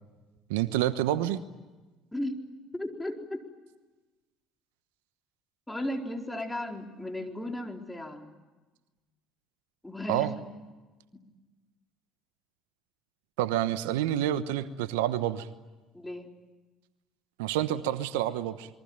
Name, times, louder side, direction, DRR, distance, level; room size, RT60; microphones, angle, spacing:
voice 1, 0.5-1.4 10.1-10.3 13.4-15.5 17.4-18.7, right 12 dB, 75° right, 13 dB, 1.1 m, -28 dB
voice 2, 2.1-2.4 2.7-3.4 5.7-8.3 9.8-10.3 11.1-11.2 15.9-16.3, left 1 dB, 10° left, 2 dB, 4.4 m, -35 dB
28.0 x 22.5 x 8.9 m, 1.2 s
hypercardioid pair, 60°, 0 cm